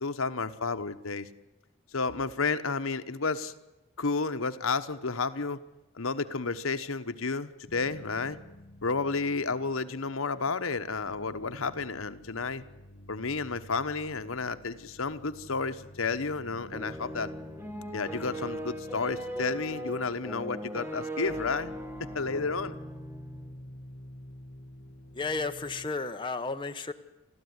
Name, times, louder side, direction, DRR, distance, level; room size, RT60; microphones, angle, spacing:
voice 1, 0.0-1.3 1.9-3.5 4.0-5.6 6.0-8.4 8.8-12.6 13.1-17.3 17.9-21.7 22.1-22.7, left 4 dB, 75° left, 10 dB, 1.1 m, -31 dB
sound 1, 7.7-10.5 10.8-25.9, left 1 dB, 45° left, 1.3 m, -50 dB
sound 2, 16.7-23.6, equal, 10° right, 1.6 m, -39 dB
voice 2, 25.1-26.9, left 3 dB, 20° left, 6 dB, 1.0 m, -33 dB
29.5 x 13.0 x 9.7 m, 1.0 s
head